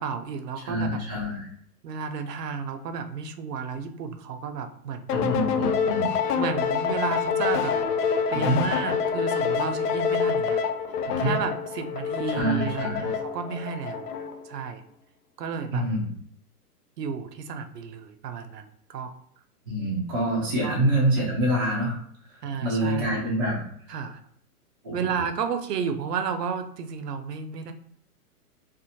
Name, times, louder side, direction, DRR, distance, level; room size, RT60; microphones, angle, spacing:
voice 1, 0.0-1.0 1.8-5.1 6.4-7.7 8.3-10.6 11.2-14.1 14.4-14.8 15.4-15.8 17.0-19.1 20.6-20.8 22.4-23.1 23.9-24.2 24.9-27.7, right 6 dB, 80° right, 8 dB, 0.6 m, -32 dB
voice 2, 0.6-1.5 5.1-6.1 8.4-8.6 11.0-11.3 12.3-13.1 15.7-16.1 19.6-22.0 22.3-23.6 24.8-25.1, right 1 dB, 20° right, -6 dB, 0.3 m, -26 dB
sound 1, 5.1-14.5, left 6 dB, 75° left, 0.5 m, -27 dB
2.5 x 2.4 x 2.6 m, 0.64 s
hypercardioid pair, 130°, 47 cm